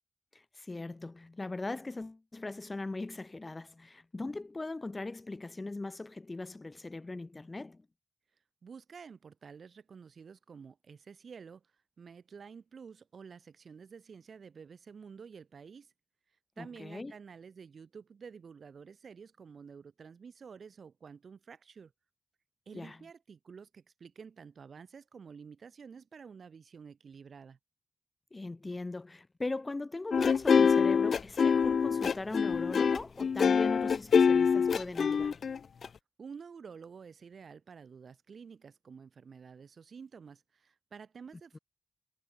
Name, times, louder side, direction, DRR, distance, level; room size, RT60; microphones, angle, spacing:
voice 1, 0.3-7.9 16.6-17.1 22.7-23.0 28.3-35.4 41.5-41.6, left 2 dB, 30° left, 2.2 m, -39 dB
voice 2, 8.6-15.9 16.6-21.9 22.7-27.6 36.2-41.6, right 6 dB, 75° right, 4.3 m, -50 dB
sound 1, 30.1-35.9, left 6 dB, 80° left, 0.7 m, -25 dB
wide cardioid pair, 85°, 0 cm